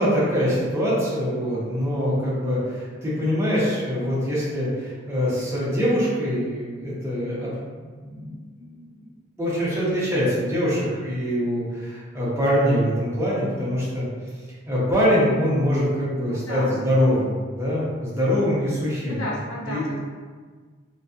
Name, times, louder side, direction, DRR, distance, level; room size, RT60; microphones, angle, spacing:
voice 1, 0.0-7.5 7.8-8.8 9.4-14.1 14.7-19.2 19.6-19.8, equal, 15° right, -8 dB, 0.7 m, -24 dB
voice 2, 16.2-16.8 19.1-20.0, left 1 dB, 70° left, -4 dB, 0.5 m, -33 dB
2.3 x 2.3 x 2.5 m, 1.5 s
head